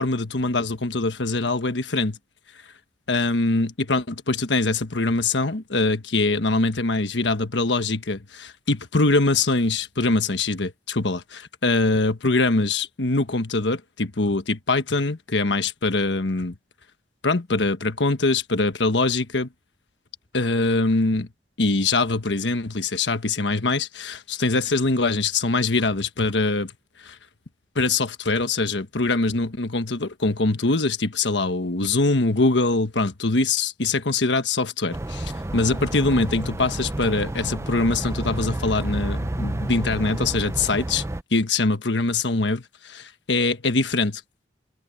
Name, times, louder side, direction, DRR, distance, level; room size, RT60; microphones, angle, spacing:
voice 1, 0.0-2.2 3.1-16.6 17.2-19.5 20.3-21.3 21.6-26.7 27.0-27.2 27.7-41.0 41.3-44.2, left 3 dB, 90° left, 1.4 m, -23 dB
sound 1, 34.9-41.2, right 1 dB, 15° right, 0.4 m, -30 dB
head